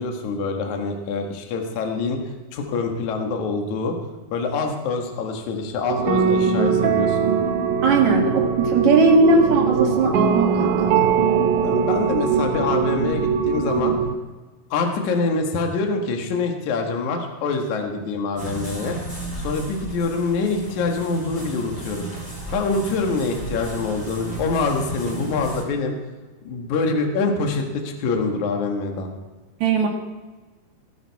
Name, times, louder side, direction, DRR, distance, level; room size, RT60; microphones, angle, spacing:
voice 1, 0.0-2.2 2.5-4.0 4.3-7.3 11.6-14.0 14.7-19.0 19.4-22.1 22.5-25.9 26.4-29.1, left 4 dB, 60° left, 3 dB, 2.7 m, -25 dB
sound 1, 5.9-14.2, right 6 dB, 70° right, 2.0 m, -21 dB
voice 2, 7.8-11.1 29.6-29.9, right 3 dB, 55° right, 1 dB, 2.7 m, -18 dB
sound 2, 18.4-25.6, right 2 dB, 10° left, 3.8 m, -34 dB
19.0 x 10.5 x 4.7 m, 1.3 s
omnidirectional pair, 4.3 m